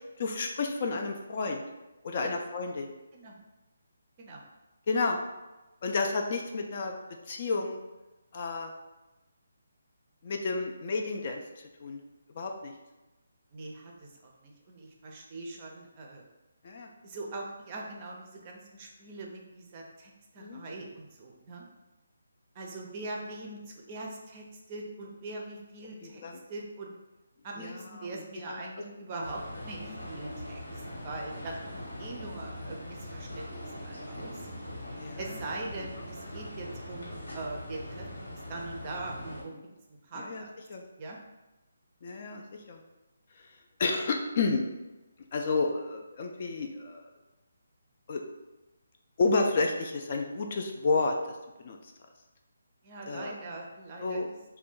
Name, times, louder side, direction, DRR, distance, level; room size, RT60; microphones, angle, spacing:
voice 1, 0.2-1.6 2.0-2.9 4.9-5.2 5.8-6.9 7.3-7.8 8.3-8.7 10.2-11.4 11.8-12.0 12.3-12.7 16.6-16.9 20.4-20.6 26.0-26.4 27.6-27.8 28.1-28.2 28.5-28.6 34.9-35.2 40.2-40.4 40.7-40.8 42.0-42.8 43.8-44.6 45.3-47.1 48.1-48.2 49.2-51.2 51.6-51.8 53.1-53.3 54.0-54.3, left 3 dB, 40° left, 3 dB, 0.3 m, -30 dB
voice 2, 13.5-16.2 17.0-21.6 22.5-26.2 26.5-27.0 27.4-34.5 35.2-39.5 39.9-40.5 41.0-41.2 52.8-54.2, right 2 dB, 25° right, 0 dB, 0.5 m, -42 dB
sound 1, 29.2-39.4, left 1 dB, 85° left, 1.1 m, -41 dB
2.5 x 2.2 x 3.6 m, 1.0 s
hypercardioid pair, 165°, 0 cm